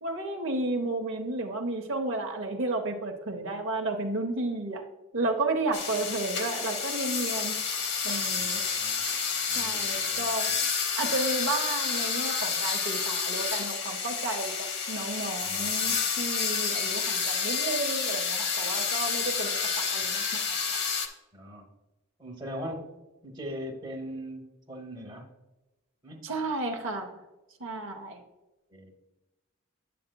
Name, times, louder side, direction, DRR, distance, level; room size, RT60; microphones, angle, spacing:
voice 1, 0.0-4.8 5.1-8.6 9.5-10.5 11.0-20.8 26.2-27.2 27.6-28.2, right 2 dB, 55° right, 3 dB, 0.7 m, -32 dB
sound 1, 5.7-21.1, left 6 dB, 50° left, 0.8 m, -29 dB
voice 2, 8.3-9.0 9.5-10.6 15.4-16.0 21.3-21.7 22.2-22.9 23.2-25.3 26.0-26.2 28.7-28.9, equal, 20° right, 1 dB, 0.9 m, -41 dB
8.6 x 7.6 x 2.2 m, 1.0 s
head